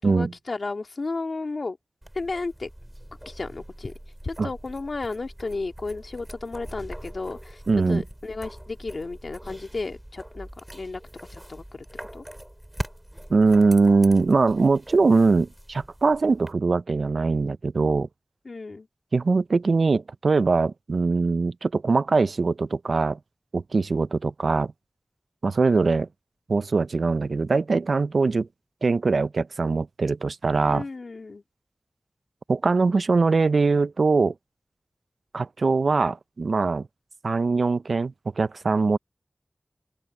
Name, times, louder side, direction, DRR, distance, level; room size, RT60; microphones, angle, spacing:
voice 1, 0.0-1.8 2.1-2.7 3.3-3.9 4.2-11.0 11.3-11.9 12.1-12.2 18.4-18.9 30.7-31.4, left 3 dB, 70° left, 2.2 m, -33 dB
sound 1, 2.0-16.5, equal, 10° right, 3.5 m, -42 dB
voice 2, 7.7-8.0 13.3-18.1 19.1-23.2 23.5-24.7 25.4-26.1 26.5-28.5 28.8-30.8 32.5-34.3 35.3-36.9 37.2-39.0, right 4 dB, 80° right, 0.4 m, -22 dB
open air
wide cardioid pair, 65°, 0 cm